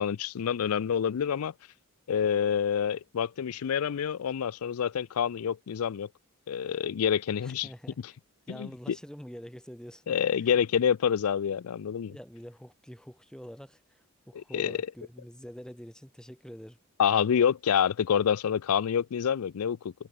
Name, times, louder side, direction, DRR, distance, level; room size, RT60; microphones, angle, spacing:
voice 1, 0.0-1.5 2.1-6.1 6.5-7.7 8.5-9.0 10.1-12.1 14.5-14.8 17.0-19.9, left 8 dB, 75° left, 0.4 m, -27 dB
voice 2, 7.4-8.0 8.5-10.1 10.4-10.5 12.1-16.8, equal, 5° left, 1.7 m, -46 dB
head